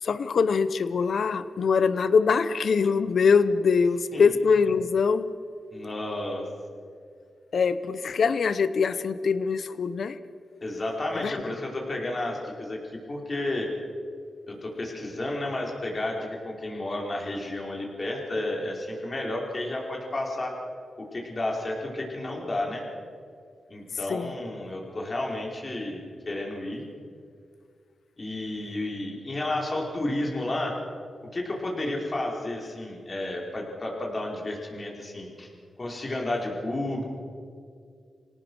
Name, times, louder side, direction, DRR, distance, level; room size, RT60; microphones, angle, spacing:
voice 1, 0.0-5.3 7.5-10.2 11.2-11.4 24.1-24.3, left 5 dB, 70° left, 14 dB, 0.9 m, -23 dB
voice 2, 5.7-6.5 10.6-12.8 13.1-13.7 14.5-20.5 21.0-22.8 23.7-26.8 28.2-30.8 31.2-35.5 35.8-37.0, left 1 dB, 40° left, 0 dB, 4.9 m, -31 dB
26.0 x 18.0 x 6.4 m, 2.2 s
cardioid pair, 65°, 0 cm